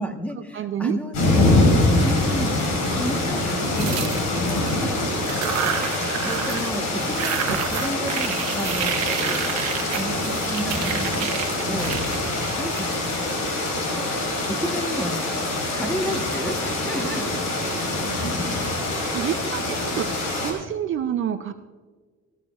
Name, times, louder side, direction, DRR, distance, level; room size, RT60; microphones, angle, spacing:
voice 1, 0.0-1.3 2.0-4.9 5.7-15.2 15.7-17.4 19.2-19.3, equal, 5° left, 4 dB, 1.2 m, -33 dB
voice 2, 0.5-1.0 1.5-1.7 17.0-17.3 17.6-18.8 19.1-21.5, right 10 dB, 45° right, 9 dB, 0.5 m, -30 dB
sound 1, 1.1-20.5, left 2 dB, 70° left, 4.3 m, -24 dB
sound 2, 3.7-4.7 5.2-6.7 7.0-13.4, right 9 dB, 60° right, 1.2 m, -30 dB
18.0 x 15.0 x 2.4 m, 1.5 s
cardioid pair, 150°, 30 cm